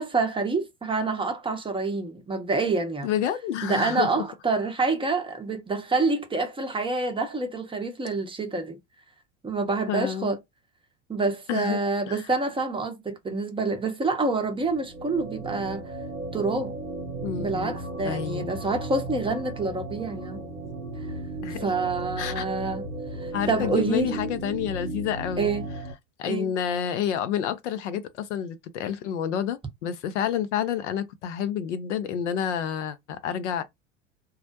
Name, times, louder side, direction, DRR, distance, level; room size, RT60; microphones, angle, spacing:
voice 1, 0.0-3.1 3.6-8.8 9.4-10.4 11.1-15.8 16.3-16.7 17.4-20.4 21.6-22.8 23.2-24.2 25.4-25.7 26.2-26.5, right 3 dB, 15° right, 0.7 m, -27 dB
voice 2, 3.0-4.2 9.9-10.3 11.5-11.8 12.1-12.2 17.2-17.8 18.0-18.5 21.4-21.6 22.2-22.5 23.3-25.5 26.2-33.6, left 9 dB, 70° left, 0.6 m, -29 dB
sound 1, 14.4-25.9, right 2 dB, 85° right, 0.6 m, -35 dB
2.3 x 2.1 x 2.7 m
hypercardioid pair, 80°, 37 cm